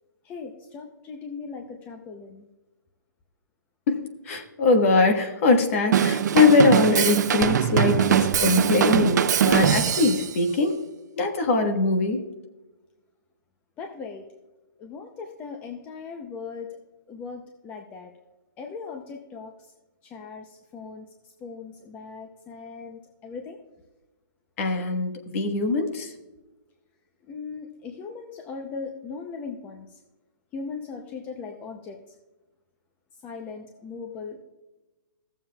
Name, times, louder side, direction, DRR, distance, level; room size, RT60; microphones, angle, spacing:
voice 1, 0.2-2.5 13.8-14.3 14.8-16.8 17.1-18.1 18.6-19.7 20.0-21.1 21.4-23.6 27.3-30.0 30.5-32.0 33.2-34.4, left 5 dB, 15° left, 3 dB, 0.5 m, -38 dB
voice 2, 3.9-10.8 11.2-12.2 24.6-26.1, left 3 dB, 40° left, 5 dB, 1.3 m, -22 dB
Drum kit / Drum, 5.9-10.3, right 8 dB, 55° right, 0.5 m, -21 dB
16.5 x 7.2 x 2.3 m, 1.1 s
hypercardioid pair, 160°, 11 cm